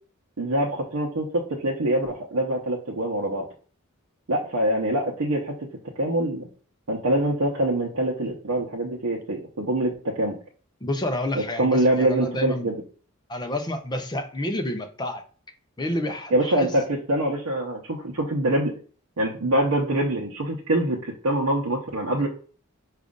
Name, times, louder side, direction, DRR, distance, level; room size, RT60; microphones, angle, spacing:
voice 1, 0.4-3.4 4.3-5.7 6.0-6.5 6.9-10.4 11.3-12.8 16.3-18.7 19.2-22.3, right 1 dB, 80° right, -3 dB, 0.7 m, -24 dB
voice 2, 10.8-12.7 13.3-15.2 15.8-16.7, left 1 dB, 20° left, 6 dB, 0.5 m, -29 dB
5.1 x 2.4 x 3.7 m, 0.41 s
head